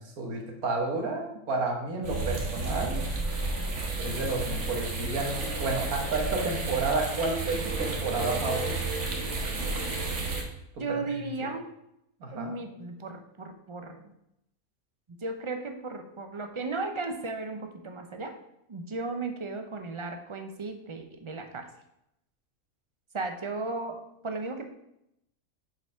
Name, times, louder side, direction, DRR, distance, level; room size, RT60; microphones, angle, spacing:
voice 1, 0.0-3.0 4.0-8.8 10.9-11.0 11.4-11.5 12.2-12.5, right 3 dB, 85° right, 1 dB, 1.8 m, -31 dB
sound 1, 2.0-10.4, right 3 dB, 55° right, 1.5 m, -32 dB
voice 2, 10.8-11.7 12.3-14.1 15.2-18.3 18.7-21.7 23.1-24.7, right 3 dB, 40° right, 6 dB, 0.4 m, -35 dB
6.0 x 4.7 x 5.5 m, 0.81 s
omnidirectional pair, 1.5 m